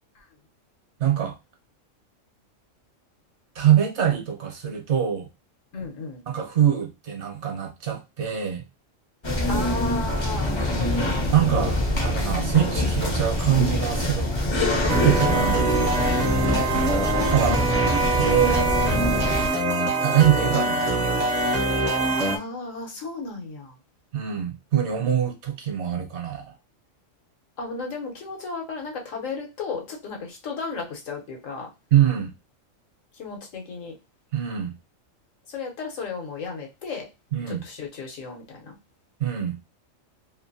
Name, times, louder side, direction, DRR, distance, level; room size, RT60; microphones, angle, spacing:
voice 1, 1.0-1.3 3.5-5.3 6.3-8.6 11.3-14.3 15.0-16.0 17.3-17.6 18.2-18.7 20.0-21.1 24.1-26.4 31.9-32.3 34.3-34.7 37.3-37.6 39.2-39.6, right 10 dB, 65° right, 2 dB, 1.0 m, -23 dB
voice 2, 5.7-6.2 9.5-11.4 15.3-15.8 16.4-17.0 22.2-23.7 27.6-31.7 33.2-34.0 35.5-37.1 37.5-38.7, left 4 dB, 75° left, 1 dB, 1.2 m, -34 dB
sound 1, 9.2-19.5, left 1 dB, 30° left, 0.5 m, -25 dB
sound 2, 14.9-22.4, right 2 dB, 45° right, 0.6 m, -23 dB
2.8 x 2.6 x 2.6 m, 0.25 s
omnidirectional pair, 1.4 m